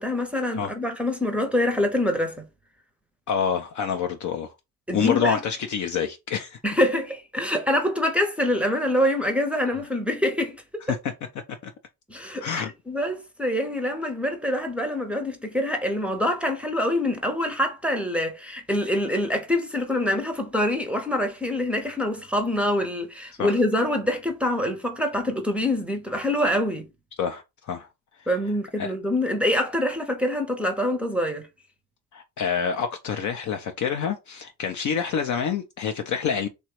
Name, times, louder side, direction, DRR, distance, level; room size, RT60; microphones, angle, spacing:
voice 1, 0.0-2.4 4.9-5.4 6.6-10.8 12.1-26.9 28.3-31.4, left 1 dB, 5° right, 0.7 m, -25 dB
voice 2, 3.3-4.5 4.9-6.6 10.9-11.0 11.6-11.7 12.4-12.7 23.4-23.6 27.2-27.9 28.8-28.9 32.1-36.5, left 7 dB, 40° left, 0.5 m, -27 dB
3.1 x 2.3 x 2.9 m
hypercardioid pair, 55°, 48 cm